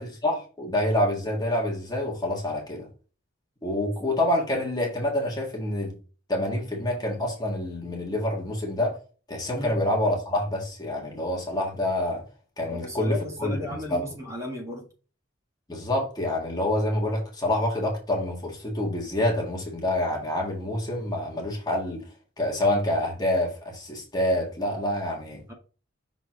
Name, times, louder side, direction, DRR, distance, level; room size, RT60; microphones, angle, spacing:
voice 1, 0.0-2.9 3.6-5.9 6.3-9.0 9.3-12.2 12.6-14.0 15.7-22.0 22.4-25.4, left 1 dB, 20° left, 1.7 m, -27 dB
voice 2, 12.6-14.8 25.5-25.6, left 1 dB, 15° right, 1.7 m, -35 dB
6.1 x 4.1 x 3.9 m
head